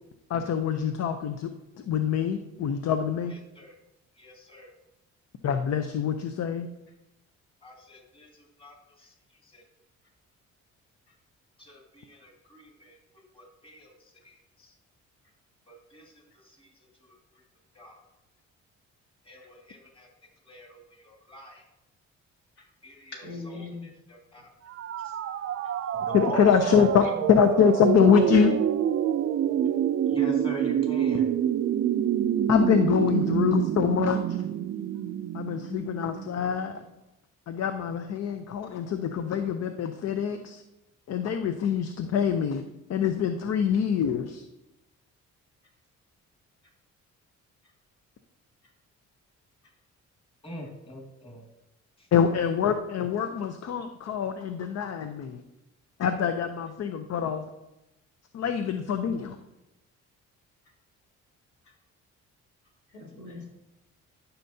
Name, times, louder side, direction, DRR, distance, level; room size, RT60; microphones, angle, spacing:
voice 1, 0.3-1.5 1.9-3.3 5.4-6.7 26.1-28.6 32.5-34.2 35.3-36.8 37.5-40.6 41.1-42.6 42.9-44.4 52.1-55.4 56.0-57.5 58.3-59.4, left 7 dB, 60° left, 8 dB, 0.6 m, -25 dB
voice 2, 4.2-4.7 7.6-9.1 9.4-9.6 11.6-13.0 13.3-13.9 14.2-14.7 15.7-16.1 16.4-16.7 17.0-17.1 17.7-18.0 19.2-20.1 20.4-21.6 22.8-24.5 25.0-25.1 25.9-26.4 30.1-31.3 50.4-51.5 52.0-52.1, equal, 15° left, 0 dB, 1.9 m, -44 dB
voice 3, 23.1-23.9 27.0-27.1 61.6-61.7 62.9-63.5, left 3 dB, 75° left, -4 dB, 3.2 m, -40 dB
sound 1, 24.7-36.5, right 10 dB, 50° right, 0.4 m, -27 dB
12.5 x 5.7 x 2.7 m, 0.92 s
cardioid pair, 90°, 30 cm